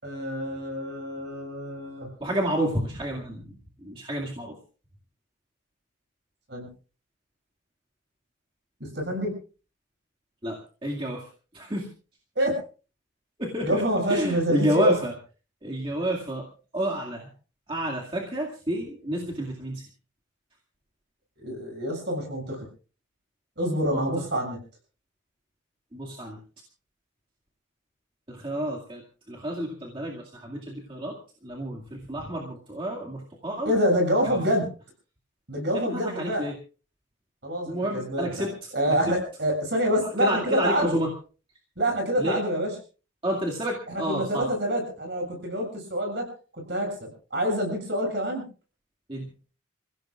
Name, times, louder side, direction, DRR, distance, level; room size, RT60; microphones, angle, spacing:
voice 1, 0.0-2.1 6.5-6.7 8.8-9.3 12.4-12.6 13.6-15.0 21.4-22.7 23.6-24.6 33.6-34.6 35.5-36.5 37.4-41.0 41.8-42.7 43.9-46.3 46.7-48.4, equal, 55° right, 3 dB, 7.3 m, -26 dB
voice 2, 2.2-3.4 3.8-4.5 10.4-10.6 10.8-11.2 11.5-11.9 13.4-13.8 14.1-15.1 15.6-16.4 16.7-17.3 17.7-19.8 23.9-24.1 25.9-26.4 28.3-29.0 29.3-31.1 31.4-33.7 34.2-34.4 35.7-36.5 37.7-38.5 40.2-41.1 42.2-42.4 43.2-44.5 49.1-49.3, equal, 25° right, -2 dB, 2.2 m, -29 dB
28.5 x 16.0 x 2.5 m, 0.36 s
head